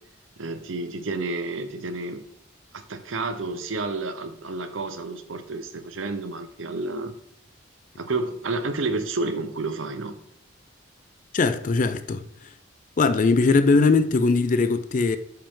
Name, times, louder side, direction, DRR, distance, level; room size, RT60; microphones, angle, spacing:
voice 1, 0.4-2.3 2.7-7.1 8.0-10.2, right 3 dB, 85° right, 0.9 m, -30 dB
voice 2, 11.3-12.2 13.0-15.2, left 3 dB, 40° left, 0.4 m, -20 dB
8.6 x 5.3 x 3.7 m
head